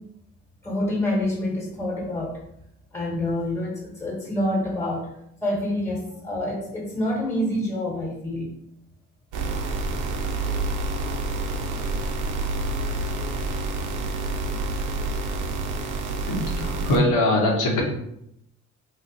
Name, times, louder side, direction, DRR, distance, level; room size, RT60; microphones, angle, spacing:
voice 1, 0.6-2.4 2.9-5.1 5.4-8.5, left 1 dB, 10° left, -2 dB, 1.0 m, -27 dB
sound 1, 9.3-17.0, right 2 dB, 85° right, 0.6 m, -28 dB
voice 2, 16.3-17.8, left 1 dB, 85° left, -1 dB, 1.0 m, -22 dB
3.1 x 2.0 x 3.9 m, 0.77 s
cardioid pair, 90°, 30 cm